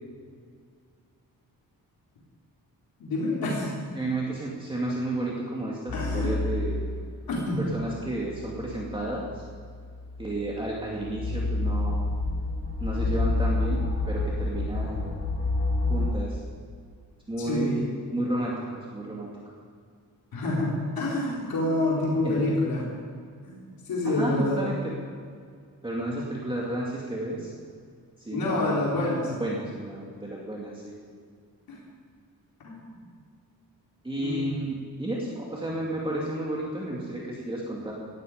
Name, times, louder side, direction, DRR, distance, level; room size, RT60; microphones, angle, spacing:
voice 1, 3.0-3.8 5.9-6.3 7.3-7.6 17.5-17.9 20.3-22.8 23.4-23.6 23.9-24.6 28.3-29.3 31.7-31.8 32.6-33.0 34.2-34.5, left 2 dB, 80° left, -5 dB, 4.2 m, -27 dB
voice 2, 3.9-6.8 7.6-9.4 10.2-12.1 12.8-15.1 15.9-16.4 17.3-17.8 18.1-19.3 22.2-22.5 24.0-24.9 25.8-27.5 28.2-28.9 29.4-30.9 34.0-37.9, right 1 dB, 15° right, -4 dB, 2.4 m, -32 dB
sound 1, 5.9-7.2 7.8-16.1, left 2 dB, 40° left, 4.3 m, -29 dB
18.5 x 13.5 x 5.1 m, 2.1 s
wide cardioid pair, 140°, 35 cm